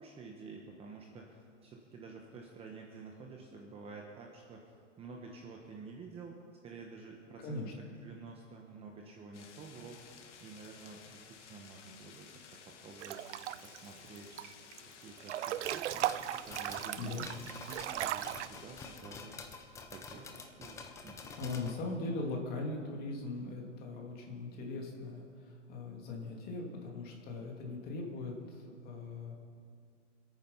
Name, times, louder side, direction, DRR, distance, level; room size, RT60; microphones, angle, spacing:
voice 1, 0.0-6.4 6.6-14.6 15.0-17.1 17.5-19.4 19.9-21.2, right 4 dB, 15° right, 1 dB, 1.1 m, -50 dB
voice 2, 7.4-7.7 16.9-17.3 21.2-29.3, left 2 dB, 25° left, 0 dB, 2.6 m, -40 dB
sound 1, 9.3-19.0, left 6 dB, 70° left, 2.2 m, -55 dB
Breathing / Bathtub (filling or washing) / Splash splatter, 13.0-13.8 14.2-14.8 15.2-18.5, right 13 dB, 70° right, 0.6 m, -37 dB
sound 2, 15.5-21.7, left 4 dB, 10° left, 0.6 m, -49 dB
25.0 x 9.3 x 5.6 m, 2.2 s
hypercardioid pair, 150°, 37 cm